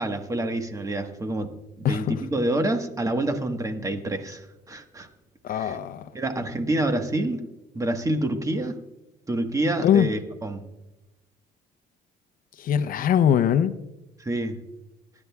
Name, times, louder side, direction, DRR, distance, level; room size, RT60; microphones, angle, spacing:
voice 1, 0.0-1.5 1.8-5.1 5.5-5.8 6.1-7.4 7.7-8.8 9.3-10.7 14.2-14.6, right 1 dB, 20° right, 6 dB, 1.3 m, -27 dB
voice 2, 1.8-2.2 5.4-6.1 9.8-10.1 12.6-13.7, left 9 dB, 55° left, 10 dB, 0.6 m, -21 dB
24.5 x 11.0 x 2.3 m, 0.97 s
cardioid pair, 110°, 17 cm